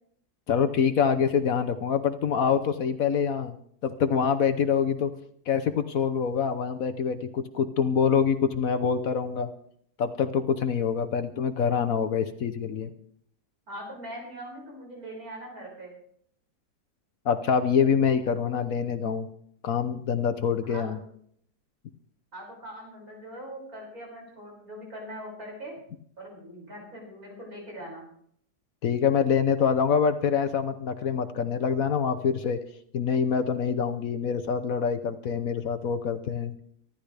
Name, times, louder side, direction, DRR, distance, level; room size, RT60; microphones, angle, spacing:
voice 1, 0.5-3.6 3.8-5.1 5.5-9.5 10.0-12.9 17.2-19.3 19.6-21.0 28.8-32.6 32.9-36.5, left 7 dB, 60° left, 9 dB, 1.2 m, -25 dB
voice 2, 13.7-15.9 20.6-21.0 22.3-25.7 26.2-28.0, equal, 60° right, -3 dB, 6.6 m, -41 dB
25.0 x 12.0 x 3.4 m, 0.66 s
omnidirectional pair, 1.7 m